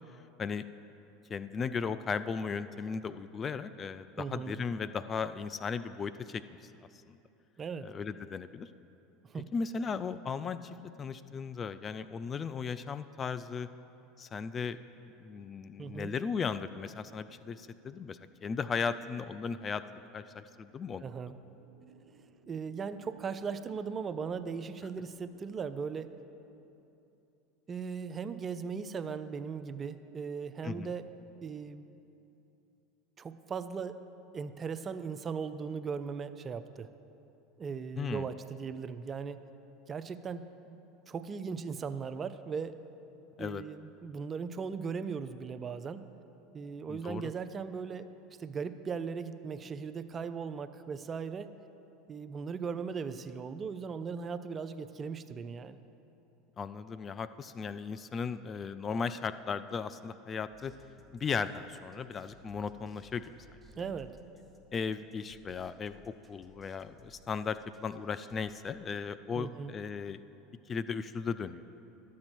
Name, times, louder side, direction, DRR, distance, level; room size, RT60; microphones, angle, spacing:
voice 1, 1.3-6.4 7.1-7.2 7.8-8.7 9.5-13.7 14.2-21.1 30.6-30.9 38.0-38.3 43.4-43.6 46.9-47.3 56.6-60.7 61.1-63.5 64.7-70.2 70.7-71.6, left 5 dB, 30° left, 13 dB, 0.3 m, -36 dB
voice 2, 4.2-4.6 7.6-7.9 9.2-9.5 15.8-16.1 21.0-21.3 22.5-26.1 27.7-31.1 31.4-31.8 33.2-34.0 34.3-36.9 37.6-39.4 39.9-40.8 41.1-42.8 43.4-46.1 46.5-48.1 48.4-51.5 52.1-55.8 63.8-64.2 69.4-69.7, right 5 dB, 30° right, 12 dB, 0.4 m, -38 dB
sound 1, 19.7-27.0, right 5 dB, 75° right, 0.8 m, -63 dB
sound 2, 60.5-68.7, right 1 dB, ahead, 1.0 m, -61 dB
12.0 x 7.4 x 4.5 m, 2.9 s
hypercardioid pair, 85°, 0 cm